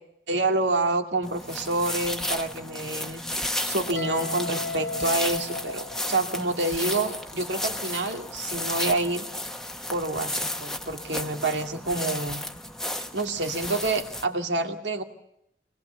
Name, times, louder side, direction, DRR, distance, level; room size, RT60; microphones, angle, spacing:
voice 1, 0.3-3.2 3.7-9.2 9.9-12.4 13.1-15.0, right 2 dB, 90° right, 5 dB, 2.3 m, -28 dB
sound 1, 1.2-14.2, left 1 dB, 5° left, 1.1 m, -33 dB
Guitar, 4.0-6.8, left 3 dB, 90° left, 2.0 m, -35 dB
24.0 x 20.0 x 8.1 m, 0.78 s
head